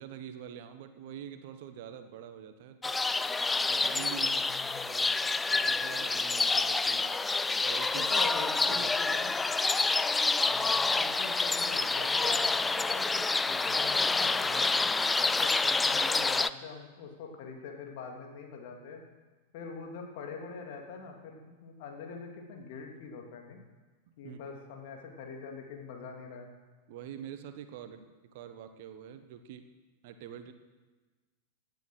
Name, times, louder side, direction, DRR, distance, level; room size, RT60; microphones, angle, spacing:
voice 1, 0.0-3.0 3.3-3.4 3.7-4.6 4.9-5.1 5.6-7.2 7.6-8.1 8.7-9.2 9.5-9.6 24.2-24.4 26.9-29.6 30.0-30.5, right 9 dB, 50° right, 9 dB, 1.3 m, -45 dB
sound 1, 2.8-16.5, left 3 dB, 10° left, 0.4 m, -28 dB
voice 2, 4.2-4.8 7.9-9.3 10.5-14.8 15.2-19.0 19.5-23.6 24.2-26.5, left 5 dB, 50° left, 1 dB, 3.0 m, -44 dB
17.0 x 10.5 x 6.5 m, 1.3 s
figure-of-eight pair, 90°, 0 cm